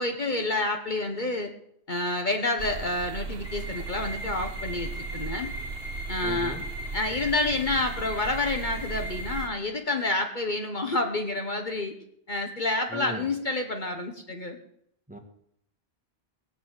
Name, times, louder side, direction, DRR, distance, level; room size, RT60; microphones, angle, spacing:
voice 1, 0.0-1.5 1.9-5.5 6.1-6.6 6.9-11.9 12.3-14.6, left 2 dB, 45° left, 4 dB, 1.4 m, -28 dB
sound 1, 2.6-9.5, right 4 dB, 70° right, 1.5 m, -37 dB
sound 2, 3.4-9.4, left 1 dB, 25° left, 3.5 m, -39 dB
voice 2, 6.2-6.6 12.9-13.3 15.1-15.2, equal, 5° right, 3 dB, 1.8 m, -38 dB
18.5 x 7.0 x 8.2 m, 0.72 s
omnidirectional pair, 1.1 m